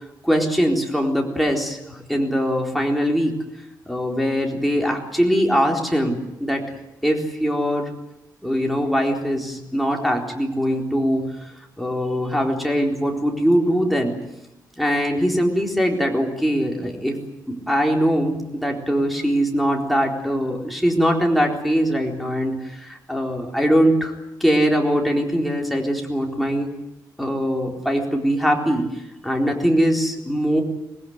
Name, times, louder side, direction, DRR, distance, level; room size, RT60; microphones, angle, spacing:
voice 1, 0.2-3.4 3.9-6.6 7.0-7.9 8.4-11.3 11.8-14.2 14.8-17.2 17.5-24.1 24.4-26.7 27.2-28.8 29.2-30.6, equal, ahead, 0 dB, 4.1 m, -21 dB
25.0 x 19.0 x 9.6 m, 0.88 s
wide cardioid pair, 150°, 7 cm